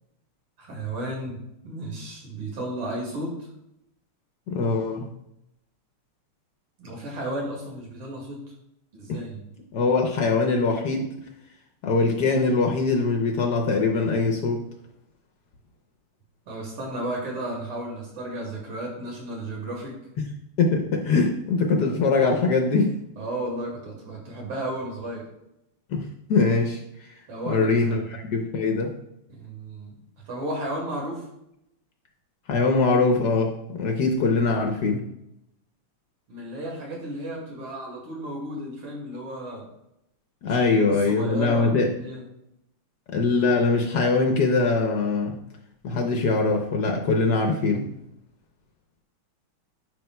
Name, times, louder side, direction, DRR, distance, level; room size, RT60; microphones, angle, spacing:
voice 1, 0.6-3.5 6.8-8.4 8.9-9.4 16.5-20.0 23.2-25.3 27.3-28.1 29.3-29.9 30.2-31.2 36.3-39.7 40.5-42.2, right 1 dB, 90° right, -1 dB, 3.0 m, -33 dB
voice 2, 4.5-5.1 9.1-9.2 9.7-11.1 11.8-14.6 20.2-20.3 20.6-23.0 25.9-26.8 27.5-28.9 32.5-35.0 40.4-41.9 43.1-45.4 45.8-47.9, left 3 dB, 60° left, 2 dB, 1.2 m, -22 dB
11.0 x 5.0 x 2.2 m, 0.81 s
omnidirectional pair, 2.4 m